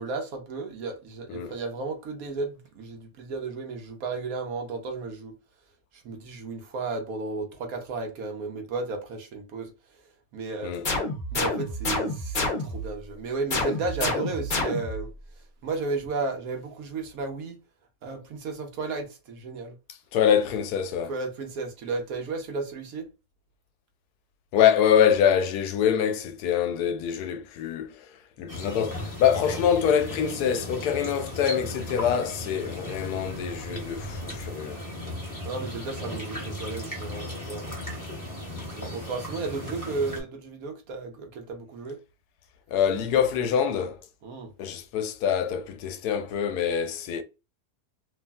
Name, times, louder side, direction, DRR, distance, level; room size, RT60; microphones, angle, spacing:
voice 1, 0.0-5.3 6.0-9.7 10.3-10.7 11.3-15.1 15.6-17.6 18.0-19.8 21.1-23.1 35.4-37.8 38.8-42.0 44.2-44.5, right 3 dB, 70° right, 1.2 m, -33 dB
sound 1, 10.8-12.9 13.5-15.1, left 2 dB, 45° left, 0.8 m, -28 dB
voice 2, 20.1-21.1 24.5-28.1 28.4-34.8 42.7-44.0 44.6-47.2, left 8 dB, 85° left, 1.1 m, -25 dB
sound 2, 28.5-40.2, left 1 dB, 15° left, 1.1 m, -36 dB
3.2 x 2.4 x 2.2 m
omnidirectional pair, 1.6 m